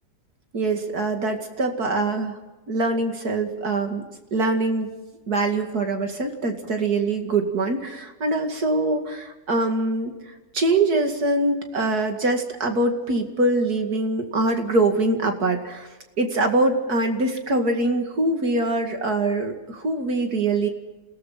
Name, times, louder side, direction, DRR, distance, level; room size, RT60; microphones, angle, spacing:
voice 1, 0.5-2.4 2.7-4.0 4.3-4.9 5.3-10.1 10.5-15.9 16.2-20.7, right 2 dB, 65° right, 5 dB, 2.8 m, -23 dB
28.5 x 18.0 x 5.8 m, 1.1 s
omnidirectional pair, 1.8 m